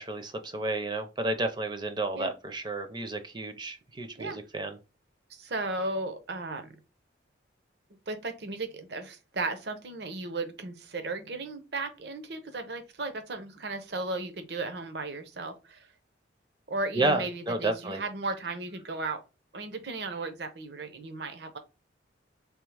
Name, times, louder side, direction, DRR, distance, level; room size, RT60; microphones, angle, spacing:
voice 1, 0.0-4.8 17.0-18.0, right 2 dB, 25° right, 6 dB, 0.6 m, -31 dB
voice 2, 5.3-6.8 8.1-15.9 16.7-19.2 19.5-21.6, right 2 dB, 60° right, 8 dB, 0.7 m, -35 dB
3.6 x 2.8 x 3.3 m, 0.28 s
head